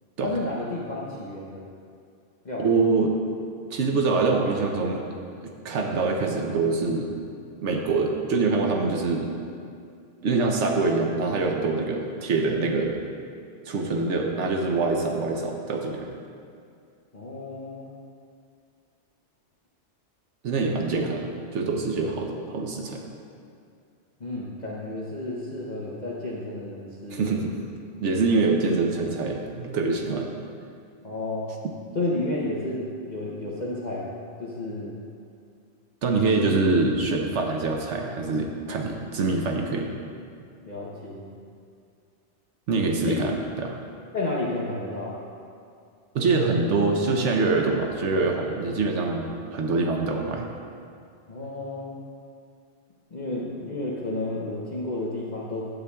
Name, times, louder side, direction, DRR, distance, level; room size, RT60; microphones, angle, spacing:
voice 1, 0.2-1.7 2.4-2.7 17.1-17.9 20.9-21.1 24.2-27.3 31.0-31.5 31.9-34.1 34.4-35.0 36.4-36.6 40.6-41.3 43.0-43.2 44.1-45.2 51.3-52.0 53.1-55.7, left 2 dB, 40° left, -5 dB, 0.9 m, -31 dB
voice 2, 2.6-3.1 3.7-5.0 5.4-7.1 7.6-9.3 10.2-13.0 13.7-16.1 20.4-23.0 27.1-27.6 28.0-30.3 36.0-39.9 42.7-43.7 46.1-50.5, right 3 dB, 75° right, 1 dB, 1.0 m, -25 dB
12.0 x 8.2 x 2.3 m, 2.3 s
omnidirectional pair, 1.2 m